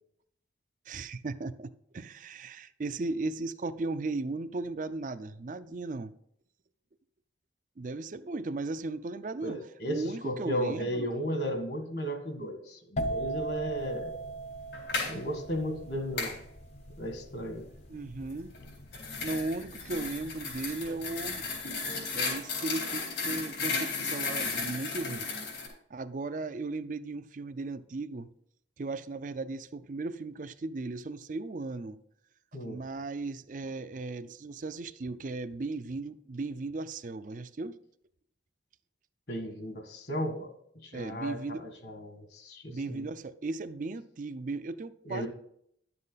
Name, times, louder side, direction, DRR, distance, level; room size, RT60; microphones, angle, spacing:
voice 1, 0.9-6.1 7.8-11.2 17.9-18.5 19.2-21.4 22.1-25.3 25.9-28.3 28.8-32.0 32.6-37.8 40.9-41.7 42.7-45.3, right 3 dB, 45° right, 0.4 m, -36 dB
voice 2, 9.4-14.1 15.0-16.4 17.0-17.6 32.5-32.8 39.3-40.5 40.8-43.1 45.0-45.3, equal, 60° left, 1.7 m, -35 dB
sound 1, 13.0-20.5 20.8-21.3, right 2 dB, 35° left, 0.7 m, -38 dB
sound 2, 14.7-15.1 16.2-16.4 18.5-25.7, left 4 dB, 80° left, 4.1 m, -34 dB
11.0 x 7.6 x 4.0 m
head